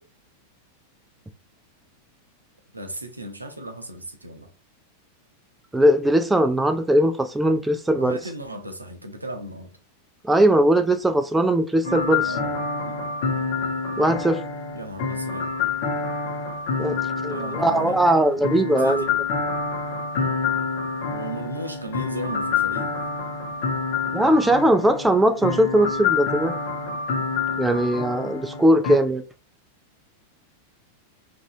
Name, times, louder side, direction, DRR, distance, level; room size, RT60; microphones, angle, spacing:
voice 1, 2.7-4.5 8.0-9.7 12.2-12.6 12.9-13.0 14.7-15.5 17.3-18.0 18.8-19.2 21.1-22.9, right 1 dB, 85° right, 0.5 m, -35 dB
voice 2, 5.7-8.2 10.2-12.3 14.0-14.4 16.8-19.0 24.1-26.5 27.6-29.2, right 1 dB, 5° right, 0.3 m, -20 dB
sound 1, 11.8-29.0, left 5 dB, 50° left, 0.6 m, -27 dB
3.0 x 2.6 x 2.6 m
figure-of-eight pair, 90°, 0 cm